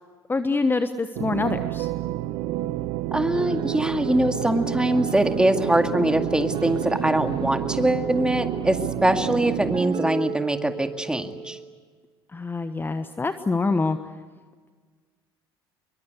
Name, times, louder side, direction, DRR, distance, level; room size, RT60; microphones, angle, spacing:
voice 1, 0.3-1.9 12.3-14.0, left 3 dB, 15° left, 10 dB, 1.2 m, -25 dB
sound 1, 1.1-9.8, right 15 dB, 60° right, 0.9 m, -30 dB
voice 2, 3.1-11.6, right 1 dB, 5° right, 7 dB, 2.1 m, -23 dB
sound 2, 3.3-11.8, right 6 dB, 40° right, 3.1 m, -34 dB
27.0 x 23.0 x 8.3 m, 1.5 s
figure-of-eight pair, 65°, 13 cm